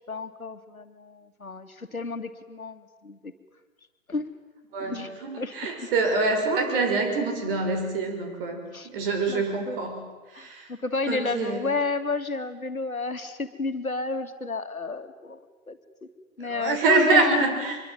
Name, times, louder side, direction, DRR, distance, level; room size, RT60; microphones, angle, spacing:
voice 1, 0.0-3.3 4.1-4.3 4.8-5.1 5.4-5.9 8.7-8.9 9.3-9.8 10.3-15.8 16.4-17.4, left 3 dB, 85° left, 8 dB, 2.5 m, -31 dB
voice 2, 4.7-10.0 10.3-10.7 11.1-11.6 16.4-17.8, right 3 dB, 40° right, 5 dB, 6.1 m, -25 dB
24.5 x 22.5 x 9.2 m, 1.2 s
figure-of-eight pair, 130°, 41 cm